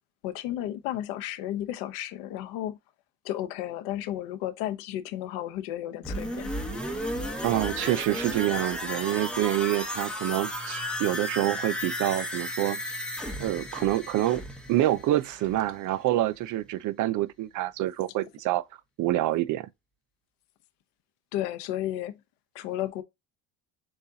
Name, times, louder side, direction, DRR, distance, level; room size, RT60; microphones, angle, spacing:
voice 1, 0.2-2.8 3.2-6.5 21.3-22.2 22.5-23.0, left 13 dB, 90° left, 0.8 m, -33 dB
sound 1, 6.0-15.8 16.1-16.2, left 1 dB, ahead, 0.9 m, -34 dB
voice 2, 7.4-12.8 13.4-14.4 14.7-18.6 19.0-19.7, right 14 dB, 50° right, 0.5 m, -27 dB
7.1 x 2.4 x 2.7 m
cardioid pair, 140°, 38 cm